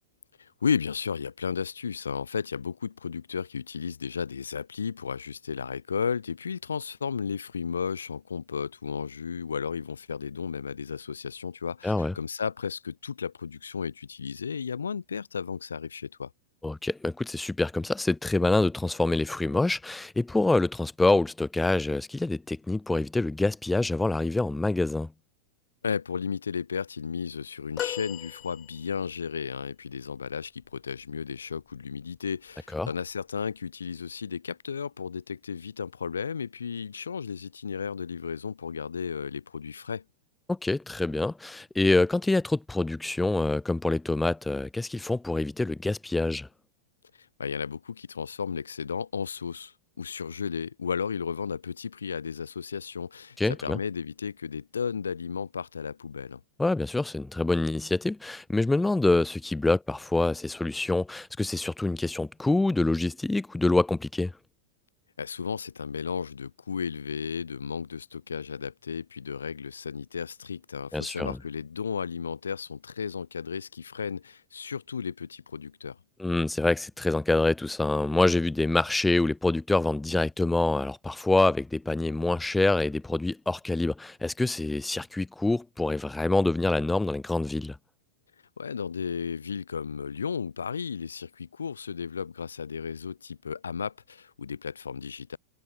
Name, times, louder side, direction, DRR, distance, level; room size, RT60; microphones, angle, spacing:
voice 1, 0.4-16.3 25.8-40.0 47.2-56.4 65.2-76.0 88.6-95.4, left 6 dB, 70° left, 4.6 m, -34 dB
voice 2, 11.8-12.1 16.6-25.1 32.7-32.9 40.5-46.5 53.4-53.8 56.6-64.3 70.9-71.4 76.2-87.8, left 2 dB, 5° left, 2.4 m, -26 dB
sound 1, 27.8-29.2 31.6-31.8 33.1-33.2, left 12 dB, 30° left, 3.9 m, -37 dB
figure-of-eight pair, 90°, 0 cm